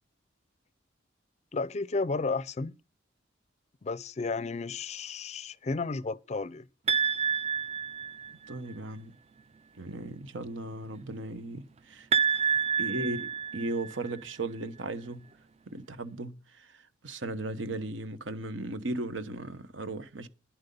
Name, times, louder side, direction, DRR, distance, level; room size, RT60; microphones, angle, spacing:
voice 1, 1.5-2.8 3.8-6.7, left 3 dB, 35° left, 0.4 m, -32 dB
sound 1, 6.9-8.5 12.1-14.1, right 7 dB, 35° right, 0.4 m, -28 dB
voice 2, 8.5-9.2 9.8-12.1 12.5-15.3 15.7-20.3, right 2 dB, 85° right, 1.0 m, -37 dB
10.5 x 7.8 x 5.4 m
head